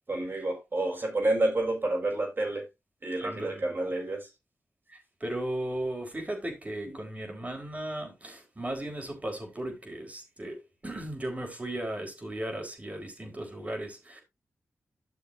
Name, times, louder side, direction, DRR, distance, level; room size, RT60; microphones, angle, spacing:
voice 1, 0.1-2.6 3.0-4.3 6.9-7.0, right 2 dB, 45° right, 4.5 m, -29 dB
voice 2, 3.2-3.7 4.9-14.2, right 1 dB, 30° right, 4.1 m, -36 dB
13.0 x 6.6 x 2.6 m
cardioid pair, 60°, 5 cm